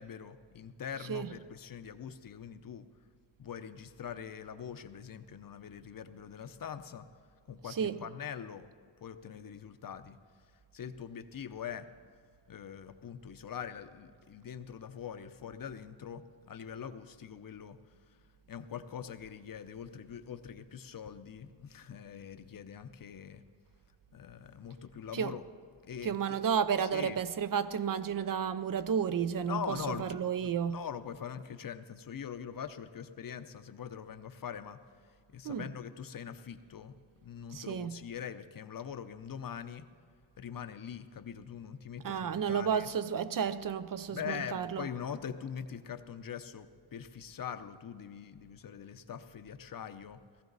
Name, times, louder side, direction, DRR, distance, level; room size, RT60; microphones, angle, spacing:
voice 1, 0.0-2.8 3.4-7.1 7.5-8.7 9.0-10.2 10.7-11.9 12.5-17.8 18.5-23.4 24.1-25.4 25.8-26.2 26.8-27.2 29.4-34.8 35.3-36.9 37.2-39.8 40.4-42.9 44.1-50.2, left 8 dB, 45° left, 0.7 m, -43 dB
voice 2, 26.0-30.8 35.4-35.6 37.5-38.0 42.0-44.9, right 7 dB, 45° right, 0.5 m, -32 dB
17.0 x 15.0 x 4.0 m
wide cardioid pair, 110°, 48 cm